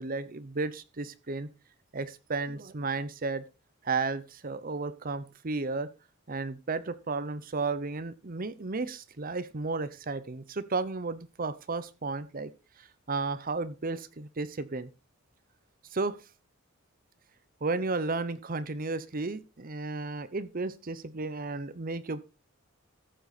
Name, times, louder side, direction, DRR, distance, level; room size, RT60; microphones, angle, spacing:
voice 1, 0.0-1.5 1.9-3.4 3.8-5.9 6.3-12.5 13.1-14.9 15.9-16.2 17.6-22.3, right 3 dB, 40° right, 16 dB, 0.8 m, -33 dB
14.5 x 7.8 x 4.1 m, 0.28 s
head